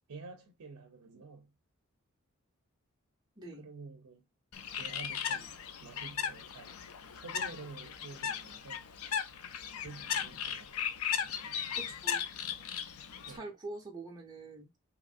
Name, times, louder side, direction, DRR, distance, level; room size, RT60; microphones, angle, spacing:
voice 1, 0.1-1.5 3.6-4.2 4.7-6.7 7.1-8.9 9.8-10.9 13.3-13.5, right 3 dB, 85° right, 0.6 m, -49 dB
voice 2, 3.4-3.7 11.7-12.2 13.3-14.7, right 3 dB, 20° right, 0.6 m, -45 dB
Bird, 4.5-13.4, left 8 dB, 75° left, 0.4 m, -37 dB
2.9 x 2.5 x 2.4 m
head